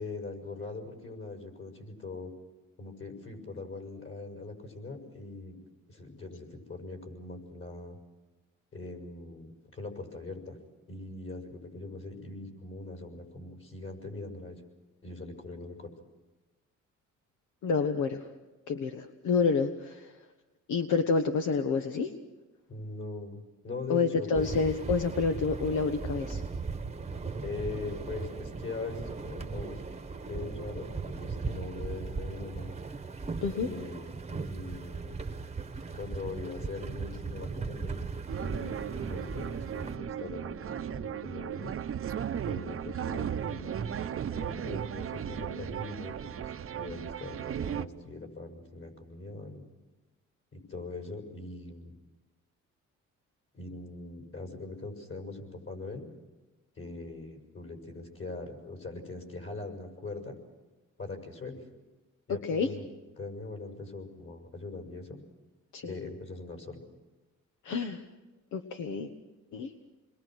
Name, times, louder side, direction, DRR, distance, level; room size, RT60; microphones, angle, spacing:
voice 1, 0.0-2.3 2.8-5.6 5.9-8.0 8.7-10.6 10.9-14.6 15.0-15.9 22.7-24.5 27.4-29.8 30.3-32.7 33.5-35.2 35.9-38.0 38.4-41.7 42.5-44.0 44.3-49.6 50.5-52.0 53.5-56.1 56.8-60.4 61.0-61.6 62.3-62.9 63.2-65.2 65.8-66.8, left 3 dB, 45° left, 3 dB, 6.5 m, -41 dB
voice 2, 17.6-18.2 18.7-20.1 20.7-22.1 23.9-26.4 33.4-33.7 62.4-62.7 65.7-65.9 67.6-68.0 68.5-69.1 69.5-69.7, left 5 dB, 75° left, 6 dB, 1.3 m, -28 dB
sound 1, 24.3-40.0, right 4 dB, 20° right, 1.2 m, -38 dB
sound 2, 38.3-47.9, right 9 dB, 45° right, 0.9 m, -36 dB
29.0 x 22.0 x 6.3 m, 1.2 s
cardioid pair, 90°, 30 cm